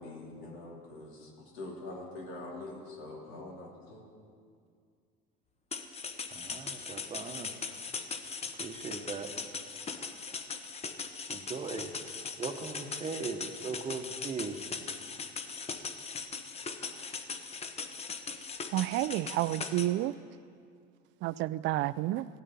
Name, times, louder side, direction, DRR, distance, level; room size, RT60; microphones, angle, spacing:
voice 1, 0.0-4.0, left 2 dB, 80° left, -2 dB, 2.6 m, -44 dB
sound 1, 5.7-19.9, left 5 dB, 30° left, 0.9 m, -40 dB
voice 2, 6.3-7.6 8.5-9.4 11.3-12.0 12.4-14.6, right 4 dB, 30° right, 7 dB, 1.0 m, -39 dB
voice 3, 18.7-20.1 21.2-22.3, right 15 dB, 65° right, 18 dB, 0.4 m, -30 dB
15.5 x 9.2 x 4.2 m, 2.2 s
supercardioid pair, 100°, 20 cm